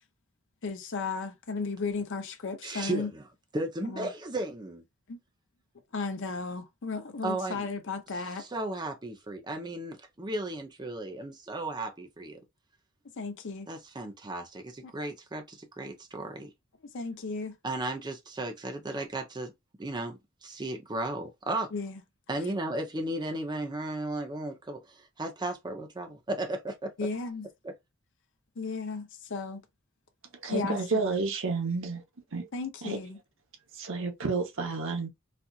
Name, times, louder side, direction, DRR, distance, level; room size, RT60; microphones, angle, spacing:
voice 1, 0.6-3.1 3.9-4.1 5.1-5.2 5.9-8.4 13.2-13.7 16.9-17.6 21.7-22.0 27.0-27.5 28.6-29.6 30.5-30.8 32.5-33.2, left 4 dB, 60° left, 0.7 m, -34 dB
voice 2, 2.6-3.2 3.5-4.8 7.2-7.7 8.4-12.4 13.7-16.5 17.6-19.5 19.8-21.7 22.3-26.9 27.6-27.7, right 2 dB, 20° right, 0.6 m, -35 dB
voice 3, 30.4-32.0 32.3-32.5 32.8-33.0 33.7-35.1, right 4 dB, 65° right, 1.0 m, -30 dB
4.2 x 2.5 x 2.4 m
head